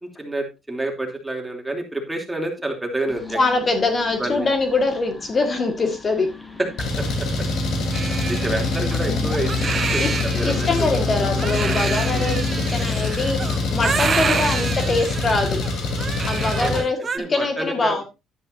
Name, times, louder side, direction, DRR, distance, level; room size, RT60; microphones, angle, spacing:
voice 1, 0.0-3.4 4.2-4.5 6.6-7.3 8.0-10.9 12.1-12.3 14.2-14.5 16.5-16.9 17.1-18.0, right 1 dB, 10° right, 2 dB, 3.1 m, -29 dB
sound 1, 3.1-12.7, right 3 dB, 10° left, 2.1 m, -36 dB
voice 2, 3.3-6.3 9.1-9.3 10.0-10.1 10.4-15.6 16.3-17.0 17.3-18.0, left 3 dB, 35° left, 6 dB, 1.9 m, -23 dB
Engine, 6.8-16.8, left 3 dB, 70° left, 3.7 m, -24 dB
Crying sobbing, 7.9-17.2, right 5 dB, 35° right, 1.3 m, -28 dB
11.0 x 10.0 x 2.7 m, 0.25 s
cardioid pair, 100°, 0 cm